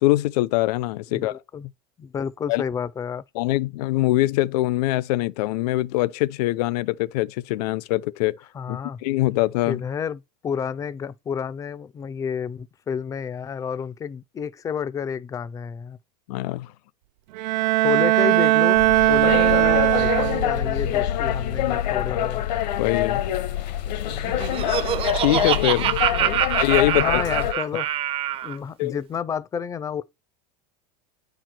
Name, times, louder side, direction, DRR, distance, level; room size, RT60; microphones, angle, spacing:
voice 1, 0.0-1.3 2.5-2.6 3.3-8.3 8.7-9.8 16.3-16.7 22.8-23.2 25.1-26.0 26.6-27.2 28.8-29.0, left 18 dB, 70° left, 0.8 m, -23 dB
voice 2, 1.1-1.7 2.0-3.2 8.5-9.0 9.7-16.0 17.8-18.8 19.1-22.4 26.1-26.4 26.9-27.9 28.4-30.0, left 7 dB, 15° left, 0.5 m, -30 dB
Bowed string instrument, 17.3-20.7, right 18 dB, 90° right, 0.5 m, -19 dB
sound 1, 18.7-27.5, left 11 dB, 90° left, 1.6 m, -25 dB
Laughter, 24.1-28.6, right 11 dB, 25° right, 0.7 m, -25 dB
9.8 x 4.7 x 6.0 m
supercardioid pair, 160°, 21 cm